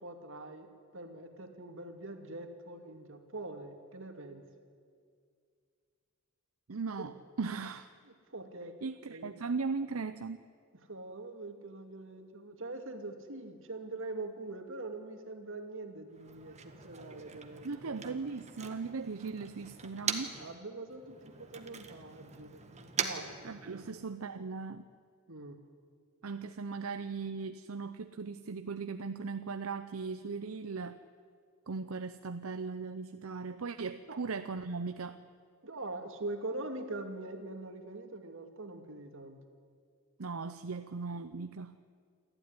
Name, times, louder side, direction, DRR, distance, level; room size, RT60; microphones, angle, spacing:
voice 1, 0.0-4.4 7.0-7.2 8.3-8.8 9.1-9.4 10.8-18.2 20.4-23.4 23.7-23.9 25.3-25.6 34.1-34.2 35.6-39.4, right 2 dB, 65° right, 5 dB, 2.4 m, -43 dB
voice 2, 6.7-7.9 8.8-10.4 17.6-20.3 23.4-24.8 26.2-31.0 31.7-35.2 40.2-41.8, right 4 dB, 85° right, 10 dB, 0.7 m, -38 dB
Motor vehicle (road), 16.1-20.5 20.9-24.1, right 6 dB, 35° right, 1.6 m, -42 dB
28.0 x 13.0 x 9.9 m, 2.2 s
head